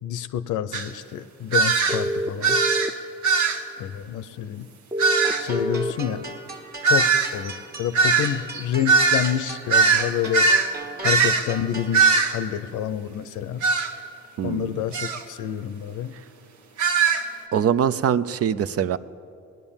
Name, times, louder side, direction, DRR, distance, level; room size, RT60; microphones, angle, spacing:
voice 1, 0.0-2.6 3.8-4.7 5.4-6.2 6.9-10.5 11.0-13.6 14.4-16.1, left 10 dB, 80° left, 14 dB, 0.7 m, -28 dB
sound 1, 0.7-0.9 1.5-2.0 2.4-2.9 3.2-3.6 5.0-5.4 6.8-10.7 11.0-11.5 11.9-12.4 13.6-13.9 14.9-15.2 16.8-17.2, right 4 dB, 70° right, 1.3 m, -20 dB
sound 2, 1.9-2.9 4.9-5.9, equal, 10° right, 0.6 m, -26 dB
sound 3, 5.2-12.2, right 2 dB, 30° right, 1.6 m, -39 dB
voice 2, 14.4-14.8 17.5-19.0, right 8 dB, 50° right, 14 dB, 0.5 m, -23 dB
18.5 x 10.5 x 7.2 m, 2.6 s
cardioid pair, 90°, 30 cm